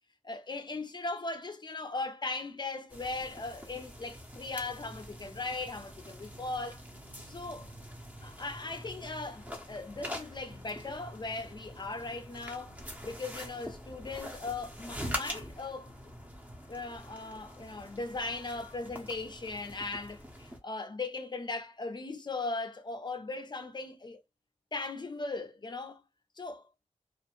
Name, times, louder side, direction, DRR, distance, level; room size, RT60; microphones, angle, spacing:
voice 1, 0.2-6.8 7.2-7.7 8.2-12.7 13.0-15.9 16.7-24.2 24.7-26.0 26.4-26.6, left 3 dB, 35° left, 0.4 m, -38 dB
sound 1, 2.9-20.6, equal, 15° right, 0.7 m, -44 dB
2.4 x 2.1 x 3.0 m
cardioid pair, 55°, 12 cm